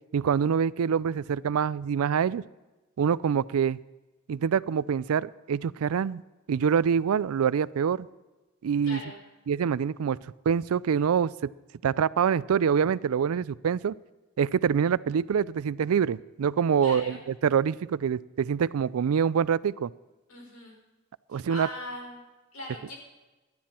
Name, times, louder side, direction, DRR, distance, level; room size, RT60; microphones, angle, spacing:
voice 1, 0.1-2.4 3.0-3.8 4.3-6.2 6.5-8.1 8.6-9.0 9.5-10.2 10.5-11.5 11.8-14.0 14.4-17.1 17.4-19.9 21.3-21.7, right 7 dB, 85° right, 20 dB, 0.4 m, -25 dB
voice 2, 8.8-9.2 16.8-17.2 20.3-20.7 21.3-22.9, left 1 dB, 80° left, 0 dB, 5.3 m, -40 dB
18.0 x 12.0 x 4.3 m, 1.1 s
head